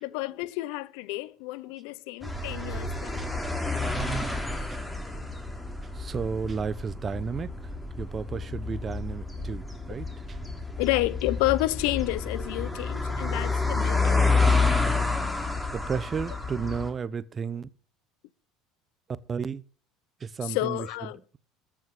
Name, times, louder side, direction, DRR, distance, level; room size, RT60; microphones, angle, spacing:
voice 1, 0.0-3.4 10.8-14.5 20.4-21.2, left 19 dB, 70° left, 0.7 m, -30 dB
sound 1, 2.2-16.9, left 3 dB, 5° left, 3.2 m, -29 dB
voice 2, 5.9-7.5 8.0-10.4 15.7-17.7 19.3-19.6 20.2-20.9, right 6 dB, 35° right, 0.9 m, -33 dB
14.0 x 6.3 x 7.8 m
hypercardioid pair, 75°, 0 cm